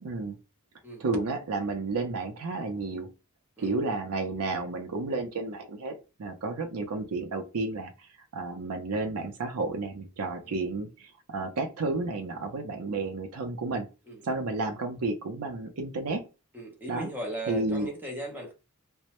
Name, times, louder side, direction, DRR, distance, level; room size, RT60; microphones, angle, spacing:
voice 1, 0.0-0.4 1.0-3.1 3.6-7.9 8.3-13.9 14.2-16.2 16.9-17.1 17.5-17.9, right 3 dB, 75° right, 0.5 m, -31 dB
voice 2, 14.1-14.4 16.5-18.5, right 1 dB, 10° right, 0.7 m, -37 dB
2.1 x 2.0 x 2.8 m
head